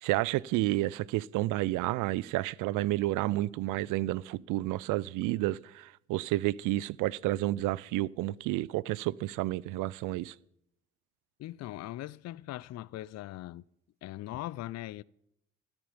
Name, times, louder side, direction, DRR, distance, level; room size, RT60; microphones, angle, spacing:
voice 1, 0.0-10.4, right 17 dB, 70° right, 0.5 m, -30 dB
voice 2, 11.4-13.6 14.0-15.0, left 15 dB, 55° left, 0.5 m, -40 dB
13.5 x 8.9 x 7.4 m
hypercardioid pair, 50°, 32 cm